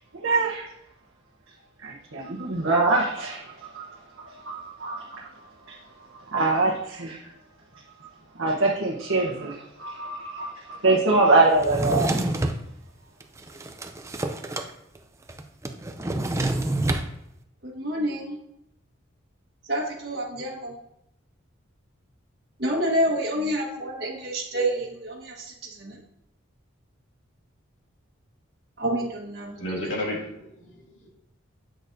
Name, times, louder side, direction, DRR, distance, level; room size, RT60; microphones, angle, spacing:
voice 1, 0.1-0.7 1.8-3.8 4.2-5.3 5.7-5.8 6.1-7.2 8.4-12.1, right 3 dB, 80° right, -3 dB, 1.0 m, -24 dB
Drawer open or close, 11.6-12.6 13.2-14.7 15.0-15.1 15.3-17.1, right 1 dB, 15° right, 0.4 m, -27 dB
voice 2, 17.6-18.3 19.7-20.7 22.6-25.5 25.8-25.9 28.8-29.5, right 1 dB, 55° right, -4 dB, 1.5 m, -28 dB
voice 3, 29.5-31.1, left 1 dB, 65° left, -4 dB, 2.5 m, -33 dB
7.9 x 6.4 x 2.7 m, 0.82 s
head